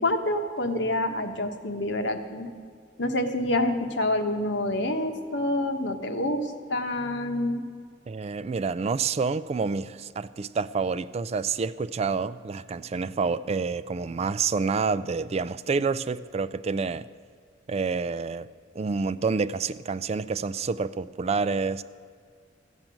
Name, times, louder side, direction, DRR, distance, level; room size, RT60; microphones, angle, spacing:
voice 1, 0.0-2.5 3.0-7.7, left 1 dB, 70° left, 6 dB, 1.2 m, -27 dB
voice 2, 8.1-17.1 17.7-18.5 18.8-21.8, right 4 dB, 35° right, 16 dB, 0.3 m, -28 dB
14.0 x 7.4 x 9.0 m, 2.1 s
head